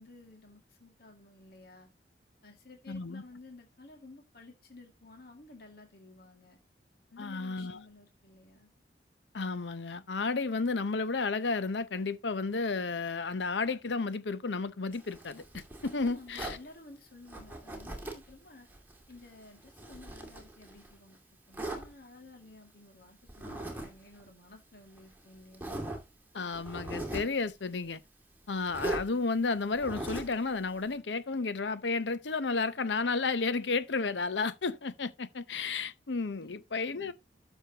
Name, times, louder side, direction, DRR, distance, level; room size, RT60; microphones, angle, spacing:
voice 1, 0.0-1.9 2.4-6.6 7.1-8.7 15.9-18.7 19.1-21.2 21.5-25.7 36.4-36.5 36.9-37.1, left 2 dB, 55° left, 2.2 m, -53 dB
voice 2, 2.9-3.2 7.2-7.8 9.3-16.6 26.3-28.0 28.5-37.1, left 4 dB, 80° left, 0.8 m, -32 dB
Zipper (clothing), 14.9-16.6 17.3-18.3 18.7-20.9 21.5-21.8 23.3-23.9 24.2-24.3 25.0-25.1 25.5-26.0 26.5-27.4 28.7-29.0 29.7-30.4, right 1 dB, 10° right, 2.4 m, -39 dB
12.5 x 6.4 x 2.9 m
head